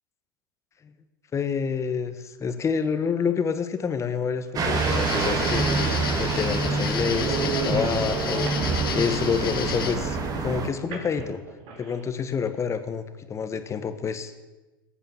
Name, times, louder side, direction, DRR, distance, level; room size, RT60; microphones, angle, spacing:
voice 1, 1.3-5.6 6.2-8.5 8.9-11.4 11.8-14.3, left 6 dB, 25° left, 10 dB, 1.6 m, -28 dB
sound 1, 4.2-4.3 4.9-5.0 5.2-9.2 10.9-12.0, right 4 dB, 50° right, 3.6 m, -35 dB
sound 2, 4.6-10.7, right 3 dB, 30° right, 2.5 m, -26 dB
sound 3, 4.7-9.9, left 9 dB, 75° left, 1.5 m, -33 dB
20.5 x 9.0 x 7.3 m, 1.2 s
hypercardioid pair, 95°, 12 cm